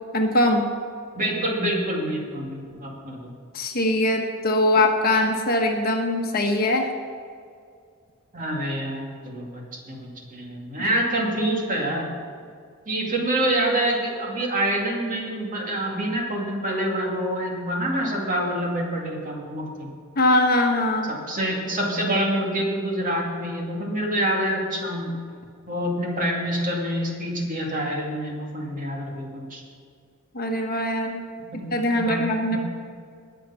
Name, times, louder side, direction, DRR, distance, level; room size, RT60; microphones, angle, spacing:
voice 1, 0.1-0.7 3.5-6.9 20.2-21.1 30.3-31.2 31.5-32.6, left 1 dB, 45° left, 2 dB, 1.3 m, -22 dB
voice 2, 1.2-3.3 8.3-12.1 12.9-19.9 21.1-25.1 25.7-29.6 31.5-32.2 32.4-32.6, right 1 dB, 35° right, -1 dB, 2.4 m, -26 dB
19.5 x 6.7 x 5.7 m, 2.2 s
head